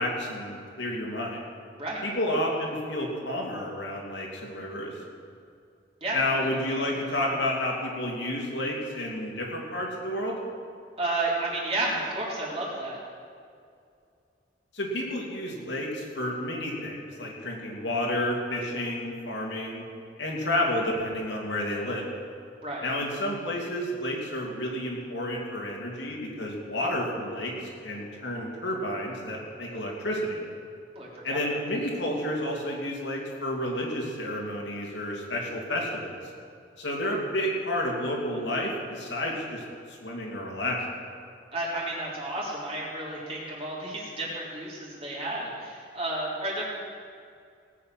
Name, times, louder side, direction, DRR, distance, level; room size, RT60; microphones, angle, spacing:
voice 1, 0.0-1.4 2.0-5.0 6.1-10.4 14.7-19.8 20.2-22.1 22.8-30.4 31.2-36.1 36.8-40.8, left 1 dB, 80° left, -2 dB, 2.8 m, -30 dB
voice 2, 6.0-6.3 11.0-13.0 22.6-22.9 31.0-31.4 41.5-46.6, right 2 dB, 35° right, -5 dB, 3.6 m, -31 dB
18.5 x 8.5 x 6.0 m, 2.4 s
head